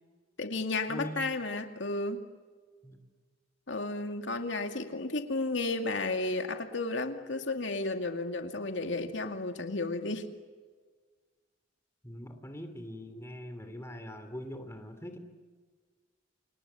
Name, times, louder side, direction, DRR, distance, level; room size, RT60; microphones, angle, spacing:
voice 1, 0.4-2.2 3.7-10.3, left 2 dB, 80° left, 5 dB, 2.3 m, -33 dB
voice 2, 0.9-1.2 2.8-3.0 12.0-15.2, equal, 15° left, 7 dB, 2.9 m, -42 dB
29.5 x 27.5 x 7.0 m, 1.5 s
head